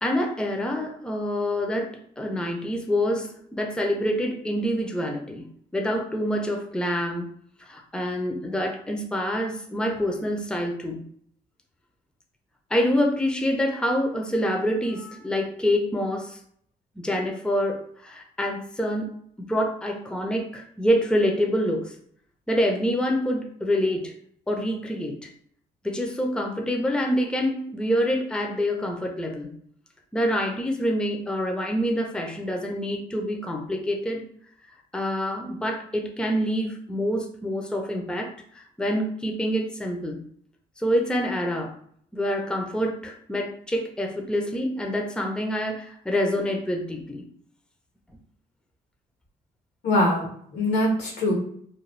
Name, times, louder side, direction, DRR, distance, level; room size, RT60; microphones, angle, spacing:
voice 1, 0.0-5.5 5.7-7.3 7.6-11.0 12.7-16.4 17.0-22.0 22.5-24.1 24.5-25.3 25.8-29.6 30.1-34.2 34.9-40.2 40.8-41.8 42.1-47.2, equal, 5° left, 2 dB, 0.5 m, -26 dB
voice 2, 49.8-51.4, left 1 dB, 80° left, -1 dB, 1.2 m, -23 dB
2.6 x 2.2 x 3.1 m, 0.64 s
cardioid pair, 85°, 17 cm